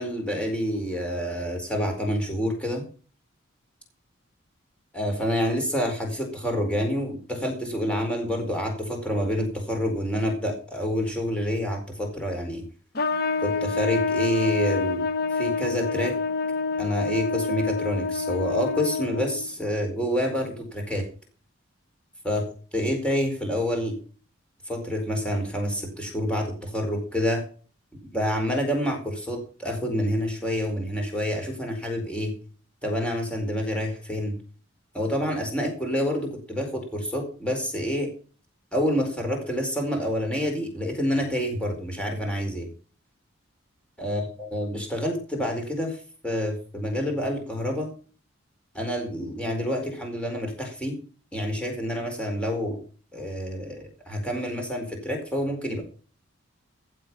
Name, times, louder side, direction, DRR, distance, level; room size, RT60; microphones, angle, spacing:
voice 1, 0.0-2.8 4.9-12.6 13.4-15.1 15.3-16.1 16.8-21.0 22.2-22.4 22.7-24.0 24.7-27.4 28.1-32.3 32.8-34.3 34.9-38.1 38.7-42.7 44.0-46.0 46.2-47.9 48.7-51.0 51.3-52.8 53.1-55.8, equal, 5° left, 2 dB, 4.5 m, -28 dB
Trumpet, 12.9-19.5, left 4 dB, 45° left, 1.0 m, -27 dB
15.5 x 7.7 x 5.7 m, 0.39 s
head